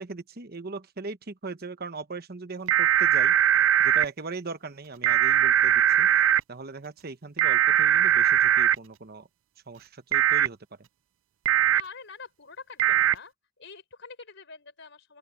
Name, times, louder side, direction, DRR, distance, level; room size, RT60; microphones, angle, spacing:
voice 1, 0.0-3.3 3.8-6.1 6.5-9.3 9.7-10.6, right 3 dB, 45° right, 1.1 m, -39 dB
sound 1, 2.7-4.1 5.0-6.4 7.4-8.8 10.1-10.5 11.5-11.8 12.8-13.1, right 10 dB, 65° right, 0.5 m, -20 dB
voice 2, 11.7-13.3 13.6-15.2, left 4 dB, 55° left, 5.8 m, -45 dB
open air
head